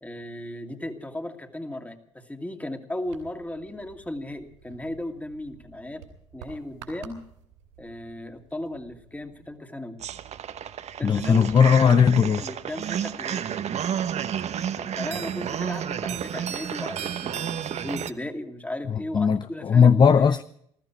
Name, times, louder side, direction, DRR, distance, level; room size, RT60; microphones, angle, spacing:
voice 1, 0.0-6.0 6.3-7.2 7.8-10.0 11.0-11.6 12.4-13.4 14.8-20.4, left 1 dB, 10° left, 2.4 m, -36 dB
sound 1, 3.0-9.6, right 7 dB, 75° right, 3.9 m, -51 dB
sound 2, 10.0-18.1, right 9 dB, 45° right, 1.0 m, -31 dB
voice 2, 11.0-12.4 19.1-20.4, left 6 dB, 30° left, 0.6 m, -18 dB
20.0 x 14.5 x 4.7 m
hypercardioid pair, 55°, 15 cm